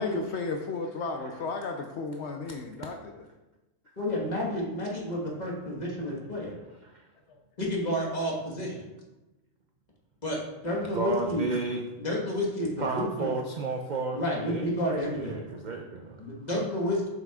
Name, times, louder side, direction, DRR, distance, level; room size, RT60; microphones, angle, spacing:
voice 1, 0.0-3.3, left 4 dB, 65° left, 4 dB, 0.8 m, -34 dB
voice 2, 4.0-6.6 7.6-8.8 10.2-11.5 12.0-13.4 14.1-15.4 16.2-17.1, left 1 dB, 35° left, -2 dB, 1.4 m, -30 dB
voice 3, 10.9-11.8 12.8-14.2 14.5-16.2, right 4 dB, 65° right, 3 dB, 0.4 m, -32 dB
7.6 x 5.8 x 2.3 m, 1.0 s
omnidirectional pair, 1.4 m